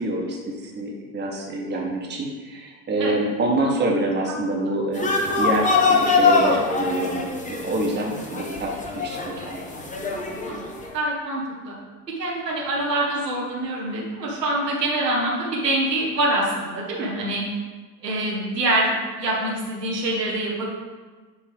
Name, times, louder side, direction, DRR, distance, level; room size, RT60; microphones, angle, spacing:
voice 1, 0.0-9.6, right 1 dB, 20° right, -1 dB, 1.3 m, -26 dB
sound 1, 4.9-10.9, left 4 dB, 15° left, 0.9 m, -23 dB
voice 2, 10.9-11.7 12.2-17.4 18.0-20.6, right 1 dB, 85° right, -4 dB, 1.6 m, -25 dB
9.5 x 3.4 x 3.5 m, 1.4 s
hypercardioid pair, 80°, 47 cm